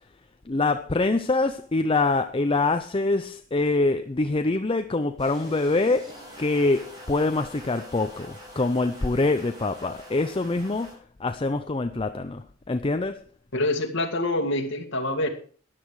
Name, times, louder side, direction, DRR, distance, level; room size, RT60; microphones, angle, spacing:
voice 1, 0.5-13.2, left 3 dB, 25° left, 0.6 m, -25 dB
sound 1, 5.2-10.9, equal, 20° right, 6.0 m, -44 dB
voice 2, 13.5-15.3, left 1 dB, 60° left, 2.2 m, -26 dB
13.5 x 10.5 x 4.8 m
head